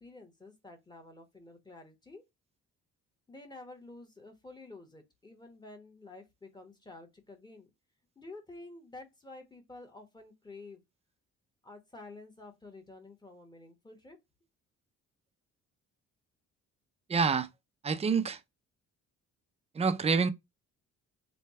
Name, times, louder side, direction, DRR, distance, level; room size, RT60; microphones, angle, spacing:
voice 1, 0.0-2.2 3.3-7.7 8.2-10.8 11.6-14.2, left 2 dB, 15° left, 1.2 m, -50 dB
voice 2, 17.1-17.5 17.8-18.4 19.8-20.3, right 5 dB, 20° right, 0.5 m, -27 dB
3.3 x 2.3 x 4.1 m
cardioid pair, 90°, 30 cm